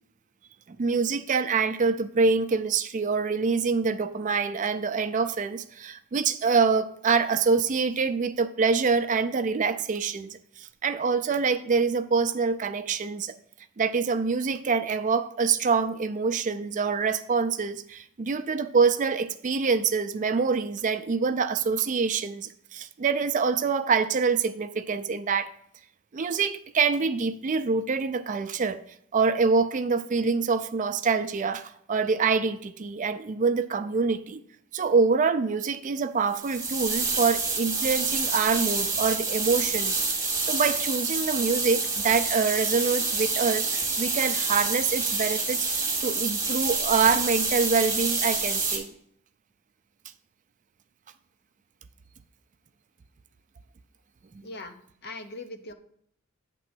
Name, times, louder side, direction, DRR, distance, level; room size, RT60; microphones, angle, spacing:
voice 1, 0.7-13.4 13.8-25.5 26.1-28.8 29.1-34.4 34.7-45.7 46.0-48.9, right 5 dB, 35° right, 11 dB, 0.4 m, -25 dB
sound 1, 36.3-48.8, right 4 dB, 15° right, 1.6 m, -27 dB
voice 2, 54.4-54.7 55.0-55.7, left 2 dB, 50° left, 7 dB, 0.7 m, -39 dB
9.0 x 3.7 x 6.1 m, 0.69 s
head